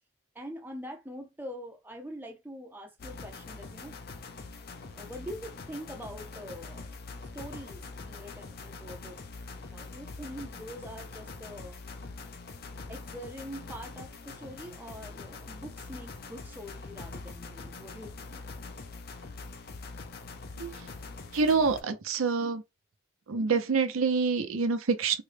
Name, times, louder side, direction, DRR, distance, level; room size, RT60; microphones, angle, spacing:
voice 1, 0.3-3.9 4.9-6.9 7.2-9.2 9.5-11.8 12.9-18.4, equal, 10° right, 0.5 m, -44 dB
sound 1, 3.0-21.8, left 4 dB, 45° left, 0.5 m, -44 dB
voice 2, 20.6-20.9 21.3-22.6 23.3-25.2, right 4 dB, 80° right, 0.6 m, -27 dB
3.7 x 2.1 x 3.3 m
head